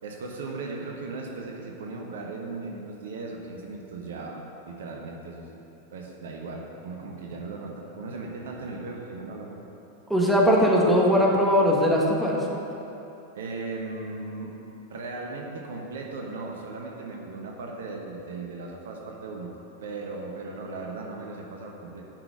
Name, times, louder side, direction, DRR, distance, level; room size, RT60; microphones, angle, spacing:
voice 1, 0.0-5.5 5.9-9.6 13.3-14.5 14.9-19.5 19.8-22.0, right 3 dB, 60° right, 0 dB, 1.1 m, -37 dB
voice 2, 10.1-12.5, equal, 5° right, -3 dB, 1.7 m, -20 dB
8.8 x 6.1 x 7.8 m, 3.0 s
figure-of-eight pair, 90°, 0 cm